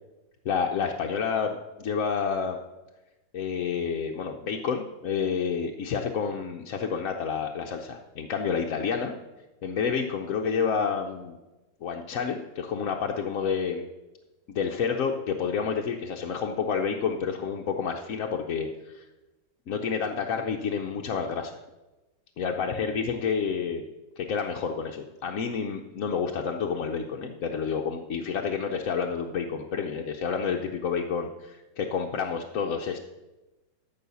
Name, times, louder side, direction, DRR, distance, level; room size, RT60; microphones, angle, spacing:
voice 1, 0.4-2.6 3.3-9.1 9.6-11.4 11.8-13.9 14.5-19.0 19.7-21.6 22.4-23.9 24.2-33.0, left 6 dB, 60° left, 2 dB, 0.9 m, -29 dB
13.5 x 5.5 x 7.0 m, 1.1 s
omnidirectional pair, 2.0 m